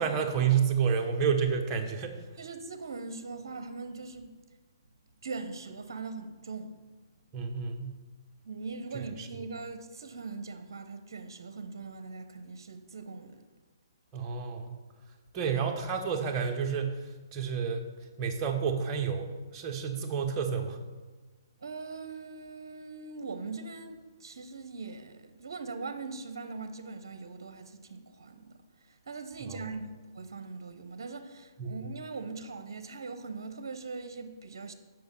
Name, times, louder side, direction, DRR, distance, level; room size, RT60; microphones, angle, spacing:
voice 1, 0.0-2.2 7.3-7.9 8.9-9.3 14.1-14.8 15.3-17.9 18.2-20.8 29.4-29.7 31.6-31.8, right 6 dB, 25° right, 1.0 m, -30 dB
voice 2, 2.4-4.3 5.2-6.8 8.4-13.5 21.6-29.9 30.1-34.7, right 4 dB, 70° right, 0.7 m, -41 dB
7.9 x 5.5 x 5.4 m
hypercardioid pair, 135°, 2 cm